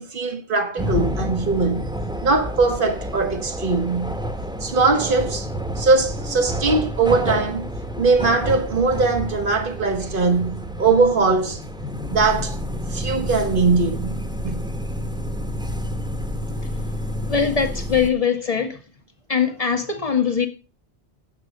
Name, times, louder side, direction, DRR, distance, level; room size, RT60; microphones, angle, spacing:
voice 1, 0.0-1.9 2.2-4.1 4.6-5.5 5.7-11.6 12.1-12.6 12.9-14.2 14.4-14.6, right 3 dB, 55° right, 1.7 m, -21 dB
sound 1, 0.8-18.1, equal, 5° right, 1.5 m, -29 dB
voice 2, 17.3-18.8 19.3-20.5, left 6 dB, 35° left, 1.7 m, -21 dB
9.9 x 7.9 x 5.3 m
omnidirectional pair, 1.1 m